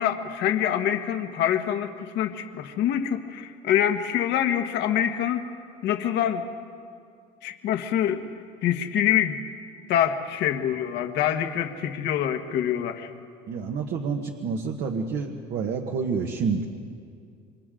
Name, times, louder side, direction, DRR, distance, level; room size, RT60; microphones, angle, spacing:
voice 1, 0.0-5.5 5.8-6.4 7.4-8.3 8.6-9.4 9.9-13.1, left 10 dB, 65° left, 6 dB, 1.5 m, -25 dB
voice 2, 13.5-16.6, right 5 dB, 60° right, 2 dB, 1.5 m, -28 dB
27.5 x 25.0 x 3.8 m, 2.3 s
cardioid pair, 110°, 19 cm